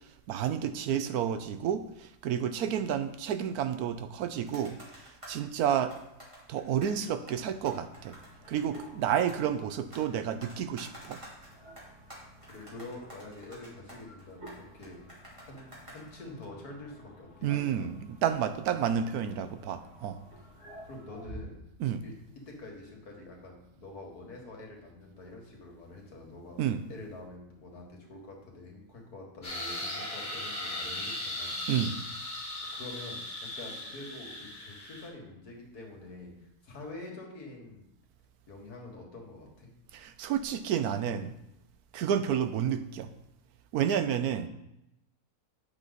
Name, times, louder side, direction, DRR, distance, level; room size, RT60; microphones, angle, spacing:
voice 1, 0.3-5.9 6.5-8.2 8.5-11.2 17.4-20.2 21.8-22.0 26.6-26.8 31.7-31.9 39.9-41.3 41.9-43.1 43.7-44.5, right 9 dB, 75° right, 10 dB, 1.1 m, -30 dB
sound 1, 4.4-5.4 5.9-7.0 7.3-10.1 10.4-16.4, equal, 20° right, 2.5 m, -50 dB
sound 2, 7.3-21.4, right 1 dB, 50° right, 3.3 m, -53 dB
voice 2, 12.5-15.0 15.4-17.9 20.2-20.3 20.8-21.5 22.0-22.1 22.5-26.6 26.9-31.5 32.7-33.2 33.6-37.8 38.5-39.7, left 2 dB, 70° left, 0 dB, 2.2 m, -46 dB
sound 3, 29.4-35.1, left 1 dB, 40° left, 2.2 m, -37 dB
8.9 x 6.1 x 4.0 m, 0.85 s
omnidirectional pair, 1.7 m